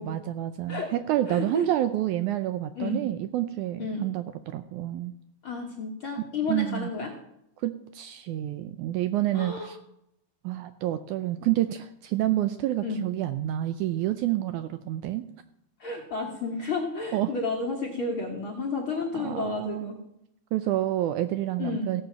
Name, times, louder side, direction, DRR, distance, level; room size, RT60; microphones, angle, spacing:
voice 1, 0.0-5.1 6.5-6.9 7.6-9.8 10.4-15.3 17.1-17.3 19.1-19.9 20.5-22.0, right 14 dB, 80° right, 10 dB, 1.9 m, -28 dB
voice 2, 1.3-1.7 2.8-3.0 3.8-4.1 5.4-7.1 9.3-9.7 12.8-13.0 15.8-20.0 21.6-21.9, left 4 dB, 50° left, 0 dB, 1.7 m, -31 dB
16.0 x 7.9 x 5.8 m, 0.79 s
omnidirectional pair, 3.8 m